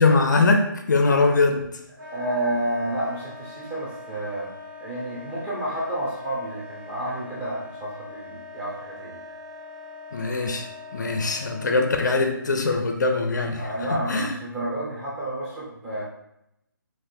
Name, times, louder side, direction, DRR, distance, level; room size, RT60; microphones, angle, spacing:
voice 1, 0.0-1.6 10.1-13.6 13.9-14.3, left 3 dB, 60° left, 4 dB, 0.4 m, -22 dB
Wind instrument woodwind instrument, 2.0-12.1, left 3 dB, 65° right, 1.2 m, -42 dB
voice 2, 2.1-4.5 4.8-9.2 13.5-16.0, right 1 dB, 10° right, -6 dB, 0.8 m, -30 dB
3.9 x 2.5 x 2.6 m, 0.81 s
figure-of-eight pair, 145°, 11 cm